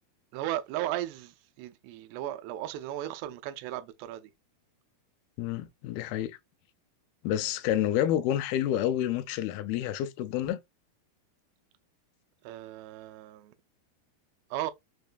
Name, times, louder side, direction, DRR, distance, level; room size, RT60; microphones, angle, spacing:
voice 1, 0.3-4.3 12.4-13.5 14.5-14.7, right 13 dB, 85° right, 2.7 m, -36 dB
voice 2, 5.4-6.4 7.2-10.6, left 11 dB, 85° left, 2.2 m, -29 dB
6.3 x 2.2 x 2.4 m
omnidirectional pair, 4.7 m